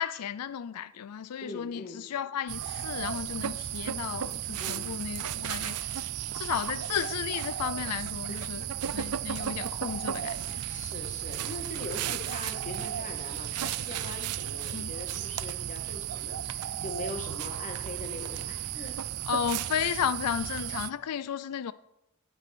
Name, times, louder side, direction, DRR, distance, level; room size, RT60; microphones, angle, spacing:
voice 1, 0.0-6.1 6.3-8.6 8.9-10.6 14.7-14.9 19.3-21.7, left 8 dB, 85° left, 0.4 m, -33 dB
voice 2, 1.4-2.0 4.6-4.9 8.3-8.5 10.6-19.0, left 2 dB, 35° left, 2.1 m, -42 dB
sound 1, 2.5-20.9, right 10 dB, 85° right, 0.5 m, -34 dB
18.0 x 7.8 x 6.1 m
head